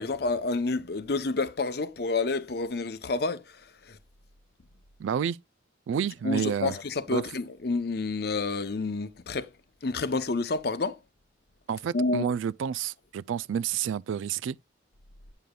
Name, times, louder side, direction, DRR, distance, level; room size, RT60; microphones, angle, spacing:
voice 1, 0.0-3.4 3.9-4.0 6.2-9.5 9.8-11.0 11.9-12.3, left 3 dB, 55° left, 0.7 m, -29 dB
voice 2, 5.0-5.4 5.9-6.7 7.1-7.2 11.7-14.6, right 8 dB, 90° right, 0.3 m, -29 dB
9.1 x 6.7 x 2.3 m
head